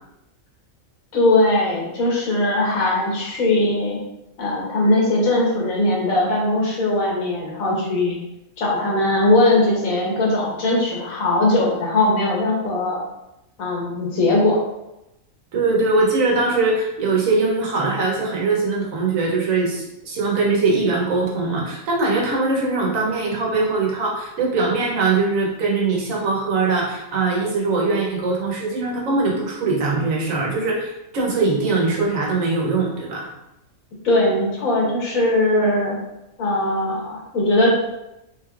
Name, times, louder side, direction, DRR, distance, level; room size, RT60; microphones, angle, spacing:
voice 1, 1.1-4.0 4.4-8.2 8.6-13.0 13.6-14.6 34.0-36.0 36.4-37.7, left 2 dB, 80° left, -3 dB, 1.4 m, -20 dB
voice 2, 15.5-33.3, right 3 dB, 70° right, -2 dB, 1.2 m, -21 dB
3.7 x 3.2 x 2.4 m, 0.89 s
omnidirectional pair, 1.5 m